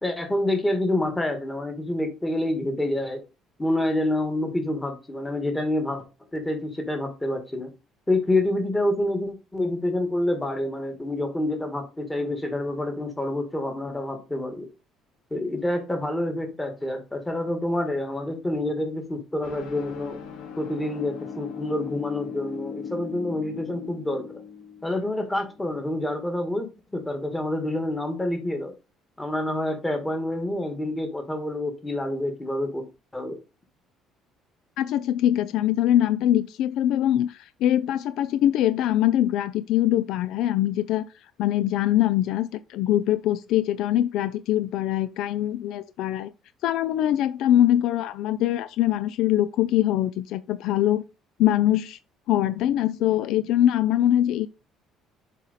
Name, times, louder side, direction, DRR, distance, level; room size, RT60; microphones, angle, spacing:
voice 1, 0.0-3.2 3.6-6.0 6.3-7.7 8.1-14.7 15.3-20.2 20.6-24.4 24.8-26.7 26.9-28.7 29.2-32.8 33.1-33.4, left 1 dB, 10° left, 1.6 m, -27 dB
sound 1, 19.4-25.8, left 7 dB, 85° left, 2.1 m, -38 dB
voice 2, 34.8-41.1 41.4-46.3 46.6-51.0 51.4-52.0 52.3-54.5, left 12 dB, 70° left, 0.4 m, -23 dB
7.3 x 4.1 x 4.0 m
cardioid pair, 150°, 0 cm